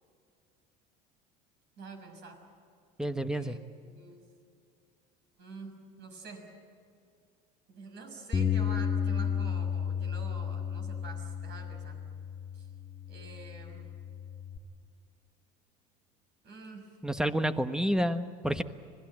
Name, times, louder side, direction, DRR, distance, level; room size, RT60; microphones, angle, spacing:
voice 1, 1.8-2.4 3.3-3.6 3.9-4.2 5.4-6.5 7.7-12.0 12.5-12.7 13.1-13.9 16.4-16.9, right 3 dB, 55° right, 4 dB, 6.2 m, -47 dB
voice 2, 3.0-3.6 17.0-18.6, equal, 5° right, 10 dB, 1.2 m, -29 dB
Bass guitar, 8.3-14.6, left 7 dB, 30° left, 2.0 m, -33 dB
26.0 x 18.5 x 8.9 m, 2.3 s
supercardioid pair, 85°, 21 cm